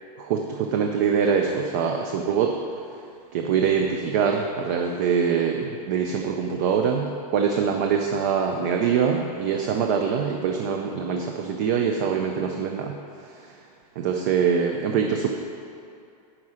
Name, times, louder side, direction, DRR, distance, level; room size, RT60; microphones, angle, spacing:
voice 1, 0.2-2.6 3.3-13.6 14.0-15.3, right 6 dB, 30° right, 3 dB, 0.4 m, -24 dB
9.8 x 4.8 x 6.2 m, 2.5 s
supercardioid pair, 180°, 20 cm